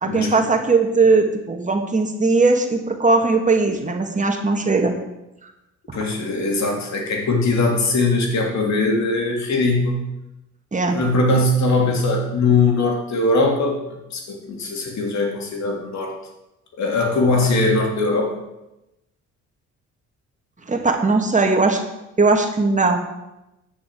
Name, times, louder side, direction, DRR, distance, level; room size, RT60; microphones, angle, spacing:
voice 1, 0.0-4.9 10.7-11.0 20.7-21.8 22.2-23.0, right 3 dB, 25° right, 3 dB, 2.1 m, -18 dB
voice 2, 5.9-9.9 10.9-13.8 14.1-16.1 16.8-18.3, left 2 dB, 65° left, 1 dB, 3.3 m, -20 dB
9.8 x 7.0 x 8.3 m, 0.93 s
cardioid pair, 90°, 30 cm